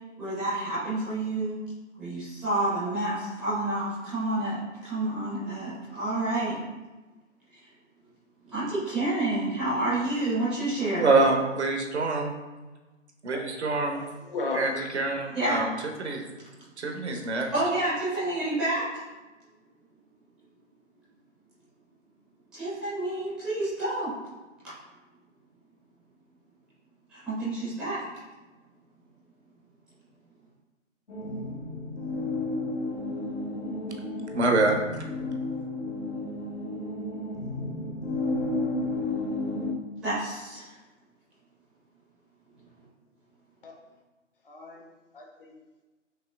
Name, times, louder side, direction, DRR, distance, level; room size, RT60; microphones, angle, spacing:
voice 1, 0.2-1.6 2.0-6.6 8.5-11.1 15.3-15.7 17.5-18.9 22.5-24.1 27.1-28.0 40.0-40.6, right 2 dB, ahead, -14 dB, 0.6 m, -29 dB
voice 2, 10.9-12.3 13.2-14.0 14.5-15.7 16.0-16.2 16.8-17.5 34.3-35.0, right 3 dB, 60° right, 2 dB, 0.8 m, -25 dB
voice 3, 13.8-14.9 16.9-17.0 43.6-43.7 44.4-44.8 45.1-45.6, left 3 dB, 45° left, 1 dB, 0.7 m, -36 dB
sound 1, 31.1-39.7, left 2 dB, 70° left, 1.0 m, -32 dB
5.5 x 3.0 x 2.3 m, 1.2 s
figure-of-eight pair, 135°, 38 cm